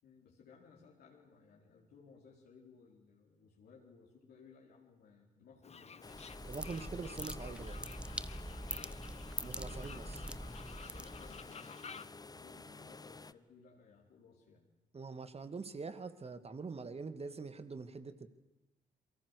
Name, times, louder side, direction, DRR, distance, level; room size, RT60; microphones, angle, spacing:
voice 1, 0.0-6.3 8.7-9.1 9.4-9.9 10.3-10.5 10.8-14.6, left 5 dB, 65° left, -1 dB, 4.5 m, -61 dB
Fowl, 5.6-12.1, left 6 dB, 40° left, 1.3 m, -53 dB
sound 1, 6.0-13.3, left 3 dB, 20° left, 1.0 m, -52 dB
sound 2, 6.1-11.5, right 1 dB, 5° right, 1.0 m, -44 dB
voice 2, 6.5-7.8 9.4-10.2 14.9-18.3, right 4 dB, 35° right, 11 dB, 2.3 m, -44 dB
28.5 x 23.5 x 6.7 m, 0.94 s
hypercardioid pair, 45°, 18 cm